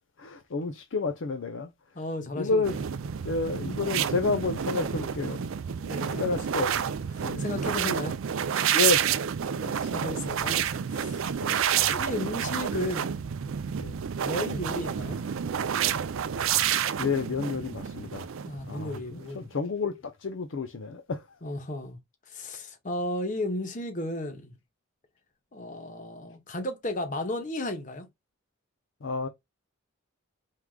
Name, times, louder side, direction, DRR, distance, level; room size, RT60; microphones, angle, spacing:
voice 1, 0.2-1.7 2.4-2.7 3.2-5.5 6.1-6.7 7.2-7.5 8.7-9.1 11.4-11.6 13.8-14.0 17.0-18.3 18.7-21.4 29.0-29.3, left 3 dB, 55° left, 0.5 m, -30 dB
voice 2, 1.9-2.8 5.8-6.6 7.4-8.2 9.6-10.6 10.9-11.3 11.9-13.2 14.2-15.2 18.4-19.5 21.4-22.0 22.3-24.5 25.5-28.1, left 1 dB, 35° left, 0.9 m, -34 dB
sound 1, 2.6-19.3, right 8 dB, 65° right, 0.4 m, -29 dB
4.7 x 3.6 x 2.2 m
head